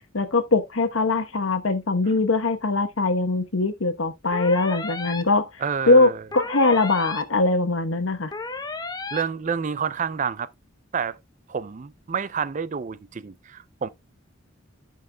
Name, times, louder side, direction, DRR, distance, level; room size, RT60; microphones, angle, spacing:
voice 1, 0.1-5.5 5.9-8.3, left 3 dB, 80° left, 1.1 m, -21 dB
sound 1, 4.3-5.2 6.3-7.2 8.3-9.2, left 3 dB, 20° left, 0.8 m, -33 dB
voice 2, 5.6-6.2 9.1-10.5 10.9-11.2 11.5-13.9, right 6 dB, 40° right, 0.4 m, -29 dB
15.0 x 5.4 x 2.3 m
head